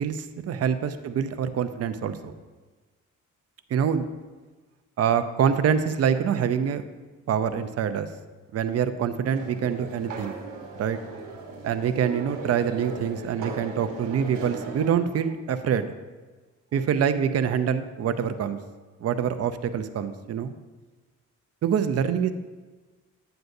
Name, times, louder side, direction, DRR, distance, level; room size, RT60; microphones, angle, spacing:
voice 1, 0.0-2.3 3.7-4.1 5.0-6.8 7.3-8.1 8.5-10.4 10.8-11.0 11.6-15.9 16.7-18.6 19.0-20.5 21.6-22.3, right 8 dB, 50° right, 10 dB, 0.6 m, -25 dB
sound 1, 9.3-14.9, right 3 dB, 90° right, 1.1 m, -38 dB
9.1 x 7.9 x 2.7 m, 1.3 s
cardioid pair, 85°, 31 cm